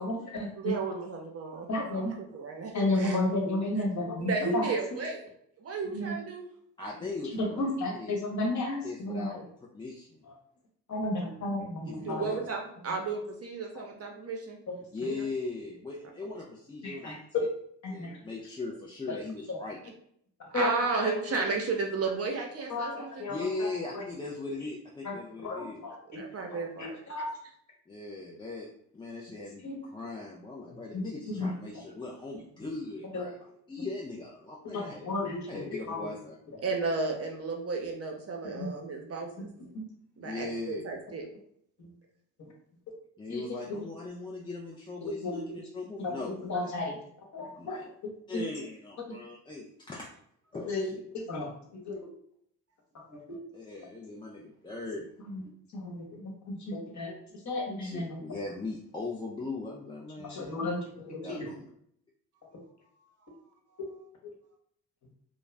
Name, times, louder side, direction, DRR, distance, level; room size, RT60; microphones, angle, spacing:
voice 1, 0.0-0.5 1.7-2.1 2.7-4.7 5.9-6.1 7.4-9.4 10.9-12.3 16.8-17.4 17.8-18.2 19.1-19.2 19.5-19.6 20.5-20.7 21.0-21.4 22.7-23.7 23.9-24.0 25.0-25.1 25.4-26.2 26.8-27.3 29.6-29.8 30.9-31.0 31.4-31.5 33.1-33.2 34.7-36.1 38.5-38.7 39.4-39.8 42.4-42.5 43.3-43.4 43.7-43.8 45.0-45.6 46.0-46.2 46.4-47.0 47.3-47.8 48.3-48.4 50.7-50.9 51.1-52.1 53.1-53.4 55.3-55.4 55.7-57.1 57.4-58.2 60.2-61.5 63.8-63.9 64.2-64.3, left 2 dB, 45° left, -1 dB, 1.1 m, -33 dB
voice 2, 0.6-1.7 1.9-3.2 4.2-5.3 5.6-6.4 12.0-14.6 15.0-15.2 20.5-23.3 26.1-27.0 36.6-39.5 40.2-41.2, right 4 dB, 40° right, 1 dB, 0.6 m, -33 dB
voice 3, 6.8-8.2 8.8-9.4 9.7-10.2 11.8-12.5 14.9-17.5 17.9-19.8 23.3-25.8 27.9-28.7 28.9-35.2 35.5-36.3 36.7-36.8 40.2-41.0 43.2-46.7 47.5-47.9 48.3-50.1 50.5-51.0 53.5-55.1 57.8-60.7 61.2-61.6, left 3 dB, 15° left, -3 dB, 0.4 m, -39 dB
2.3 x 2.0 x 3.1 m, 0.68 s
supercardioid pair, 65°, 40 cm